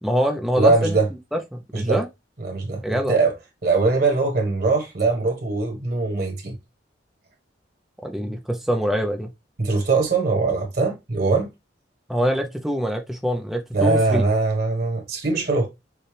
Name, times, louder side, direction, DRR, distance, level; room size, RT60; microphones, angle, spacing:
voice 1, 0.0-1.0 1.3-2.1 2.8-3.1 8.0-9.3 12.1-14.2, equal, ahead, 0.6 m, -24 dB
voice 2, 0.6-1.1 1.7-2.0 2.4-3.3 3.6-6.6 9.6-11.5 13.7-15.7, right 3 dB, 55° right, 1.6 m, -21 dB
6.6 x 2.3 x 3.3 m
head